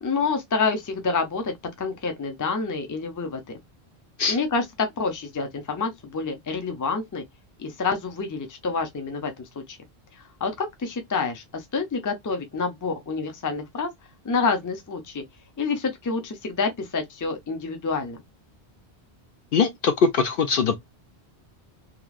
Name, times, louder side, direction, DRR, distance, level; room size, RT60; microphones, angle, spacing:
voice 1, 0.0-3.6 4.3-7.2 7.6-9.8 10.1-13.9 14.2-15.2 15.6-18.2, left 4 dB, 25° left, 0.4 m, -28 dB
voice 2, 19.5-20.8, left 5 dB, 60° left, 0.7 m, -21 dB
3.1 x 2.3 x 2.3 m
omnidirectional pair, 1.1 m